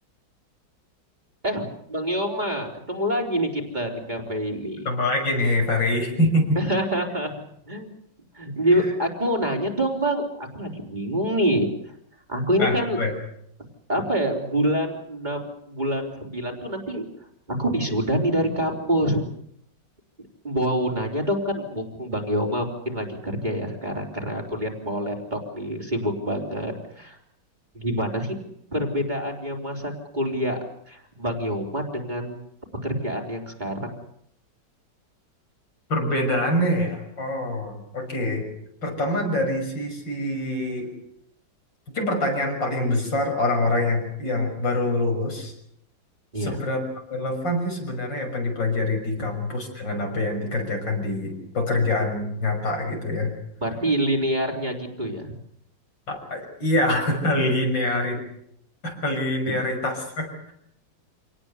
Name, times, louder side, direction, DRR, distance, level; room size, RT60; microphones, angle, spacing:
voice 1, 1.9-4.9 6.6-7.3 7.7-7.9 8.3-11.7 12.3-13.0 13.9-17.1 17.5-19.2 20.4-27.2 27.8-28.4 28.7-30.6 30.9-32.4 32.8-34.0 46.3-46.6 49.2-49.3 53.6-55.3, equal, 25° right, 1 dB, 4.0 m, -26 dB
voice 2, 4.9-6.6 8.7-8.9 12.6-13.1 35.9-38.5 38.8-40.9 41.9-45.5 46.4-53.3 56.1-58.2 58.8-60.5, left 1 dB, 80° left, 2 dB, 7.0 m, -25 dB
27.5 x 18.5 x 8.3 m, 0.71 s
omnidirectional pair, 2.0 m